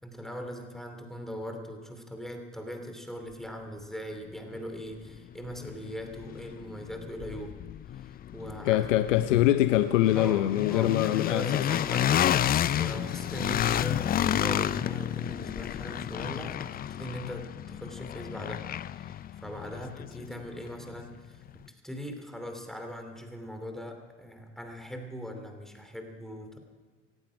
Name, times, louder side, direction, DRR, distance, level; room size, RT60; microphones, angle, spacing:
voice 1, 0.0-7.5 7.9-8.8 10.1-10.4 10.7-26.6, equal, ahead, 4 dB, 2.7 m, -40 dB
sound 1, 4.5-4.6 5.1-21.1, left 11 dB, 25° left, 0.4 m, -31 dB
voice 2, 8.6-11.7 13.6-13.9, left 13 dB, 75° left, 11 dB, 0.7 m, -24 dB
19.0 x 14.5 x 5.0 m, 1.4 s
hypercardioid pair, 75°, 38 cm